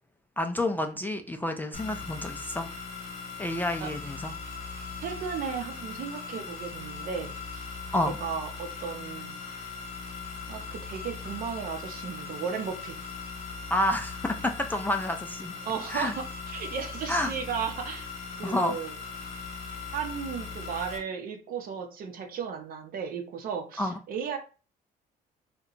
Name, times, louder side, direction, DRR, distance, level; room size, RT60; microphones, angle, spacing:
voice 1, 0.4-2.7 3.4-4.3 7.9-8.2 13.7-15.5 15.9-16.1 17.1-17.3 18.4-18.8 23.8-24.0, left 1 dB, 10° left, 5 dB, 0.3 m, -29 dB
sound 1, 1.7-21.0, left 5 dB, 40° left, 1.1 m, -39 dB
voice 2, 5.0-7.7 8.0-9.4 10.5-13.0 15.6-18.1 18.4-18.9 19.9-24.4, right 6 dB, 60° right, 5 dB, 0.7 m, -35 dB
2.8 x 2.2 x 3.8 m, 0.36 s
cardioid pair, 110°, 17 cm